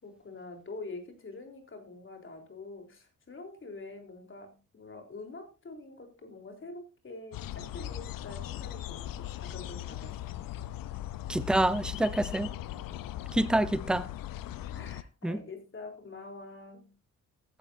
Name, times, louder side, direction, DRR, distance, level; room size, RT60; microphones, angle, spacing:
voice 1, 0.0-10.4 14.7-17.0, left 3 dB, 40° left, 3.7 m, -46 dB
sound 1, 7.3-15.0, left 13 dB, 85° left, 0.7 m, -39 dB
voice 2, 11.3-12.5 13.3-14.0 15.2-15.4, right 1 dB, ahead, 0.8 m, -27 dB
15.5 x 10.0 x 2.6 m
cardioid pair, 90°, 33 cm